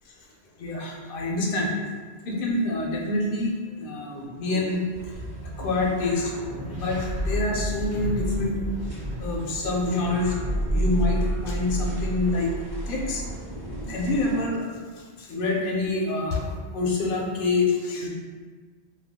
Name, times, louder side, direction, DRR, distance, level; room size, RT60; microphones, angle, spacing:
voice 1, 0.6-1.7 2.2-5.0 5.6-6.3 6.7-8.6 9.2-10.3 10.7-12.5 12.9-13.2 13.9-14.7 15.2-18.1, left 2 dB, 60° left, -1 dB, 0.7 m, -26 dB
sound 1, 4.9-14.4, right 1 dB, 25° right, 0.8 m, -30 dB
2.3 x 2.2 x 3.4 m, 1.5 s
omnidirectional pair, 1.1 m